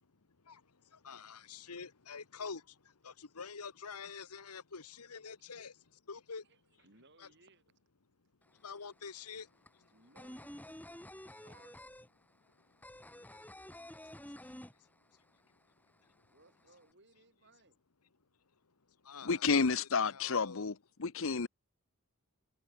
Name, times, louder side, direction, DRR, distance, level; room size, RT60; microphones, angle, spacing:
voice 1, 1.0-2.6 3.0-5.7 6.1-6.4 7.2-7.3 8.6-9.5 19.1-20.7, left 5 dB, 90° left, 1.3 m, -46 dB
voice 2, 6.8-7.7 9.9-10.9 11.4-11.9 16.3-17.8, right 2 dB, 50° right, 7.8 m, -64 dB
sound 1, 8.4-8.5 8.8-15.4 15.6-15.7 16.0-16.8, left 1 dB, 5° left, 3.0 m, -50 dB
voice 3, 19.3-20.7 21.0-21.5, left 5 dB, 60° left, 0.9 m, -30 dB
head